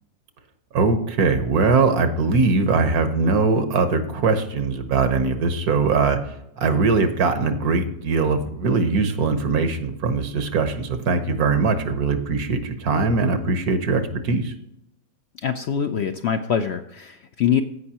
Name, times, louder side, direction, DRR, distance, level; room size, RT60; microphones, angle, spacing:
voice 1, 0.7-14.5, right 4 dB, 80° right, 8 dB, 1.5 m, -21 dB
voice 2, 15.4-17.6, left 8 dB, 65° left, 7 dB, 0.6 m, -24 dB
16.0 x 5.4 x 2.9 m, 0.79 s
omnidirectional pair, 1.6 m